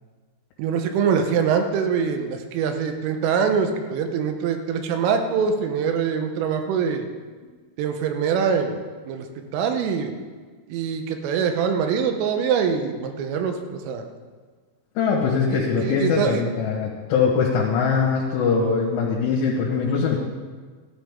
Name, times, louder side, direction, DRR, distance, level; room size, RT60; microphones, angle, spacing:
voice 1, 0.6-7.1 7.8-8.8 9.1-9.3 9.5-10.1 10.7-14.0 15.5-16.4, right 6 dB, 80° right, 6 dB, 3.5 m, -24 dB
voice 2, 15.0-20.2, left 5 dB, 75° left, -4 dB, 3.9 m, -22 dB
14.5 x 11.5 x 3.7 m, 1.5 s
omnidirectional pair, 5.9 m